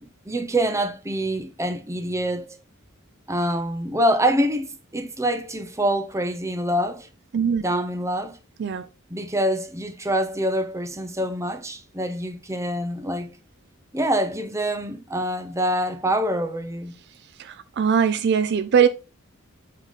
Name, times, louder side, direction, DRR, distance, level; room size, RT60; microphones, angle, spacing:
voice 1, 0.0-2.6 3.3-7.1 7.6-8.4 9.1-13.3 13.9-17.0, right 1 dB, 15° right, 0.8 m, -25 dB
voice 2, 7.3-7.6 8.6-8.9 17.4-18.9, right 7 dB, 50° right, 0.4 m, -21 dB
8.1 x 3.9 x 4.0 m
head